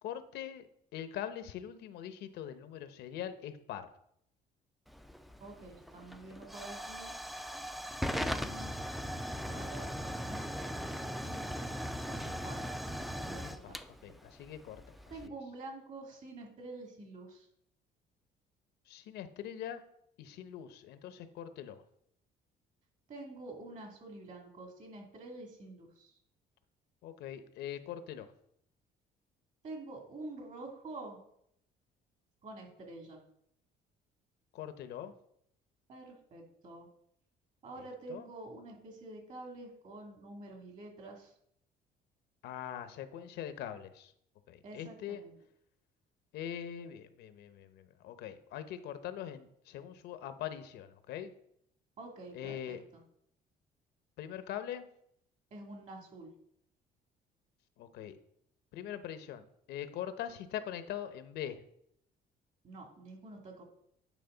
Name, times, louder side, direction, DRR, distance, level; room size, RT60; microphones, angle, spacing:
voice 1, 0.0-0.7 0.9-3.9 13.4-13.8 14.0-14.9 15.2-15.3 18.9-19.8 20.2-21.8 27.0-28.3 34.5-35.1 38.1-38.3 42.4-44.1 44.5-45.2 46.3-51.3 52.3-52.8 54.2-54.8 57.8-58.2 58.7-61.6, left 10 dB, 80° left, 10 dB, 0.8 m, -42 dB
Hiss / Fire / Tick, 4.9-15.3, equal, ahead, 0.4 m, -39 dB
voice 2, 5.4-7.1 8.3-8.7 9.4-10.4 11.0-13.8 15.1-17.5 23.1-26.1 29.6-31.2 32.4-33.2 35.9-36.9 37.6-41.3 44.6-45.4 52.0-53.0 55.5-56.3 62.6-63.6, right 2 dB, 45° right, 1 dB, 2.4 m, -48 dB
9.2 x 4.9 x 3.9 m, 0.72 s
cardioid pair, 110°, 17 cm